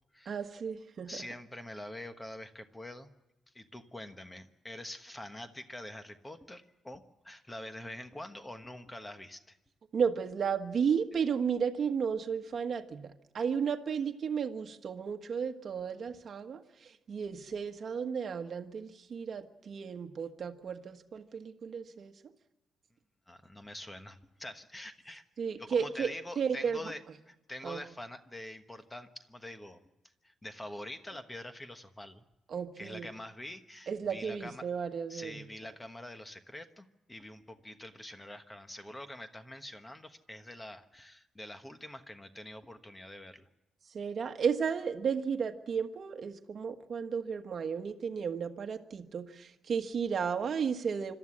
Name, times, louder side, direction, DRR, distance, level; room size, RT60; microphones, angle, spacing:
voice 1, 0.3-1.3 9.9-22.1 25.4-26.9 27.6-27.8 32.5-33.1 33.9-35.7 43.9-51.1, right 6 dB, 40° right, 7 dB, 1.4 m, -34 dB
voice 2, 1.1-3.1 3.5-9.6 23.3-25.2 25.6-27.0 27.3-29.8 30.2-32.2 32.8-34.6 35.1-43.5, left 1 dB, 10° left, 8 dB, 1.2 m, -45 dB
26.0 x 13.0 x 9.8 m, 0.96 s
cardioid pair, 175°, 0 cm